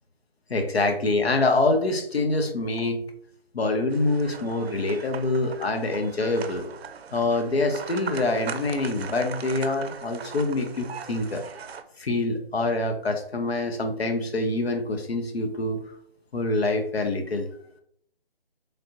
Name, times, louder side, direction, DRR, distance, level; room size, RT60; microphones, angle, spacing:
voice 1, 0.5-3.0 3.5-6.7 7.1-11.4 12.0-15.8 16.3-17.5, left 2 dB, 90° left, 5 dB, 0.8 m, -25 dB
sound 1, 3.9-11.8, right 6 dB, 85° right, 0.5 m, -39 dB
3.3 x 2.5 x 2.8 m, 0.66 s
figure-of-eight pair, 175°, 30 cm